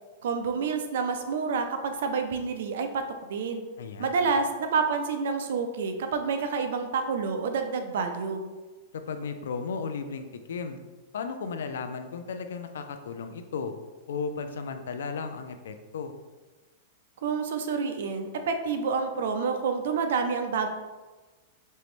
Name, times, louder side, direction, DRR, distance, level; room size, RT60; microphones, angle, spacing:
voice 1, 0.2-3.0 3.3-3.6 4.0-8.4 17.2-20.7, right 5 dB, 75° right, 6 dB, 0.6 m, -28 dB
voice 2, 3.8-4.4 8.9-10.8 11.1-13.7 14.1-16.1, left 5 dB, 90° left, 8 dB, 0.5 m, -35 dB
5.5 x 3.0 x 3.2 m, 1.2 s
supercardioid pair, 155°, 0 cm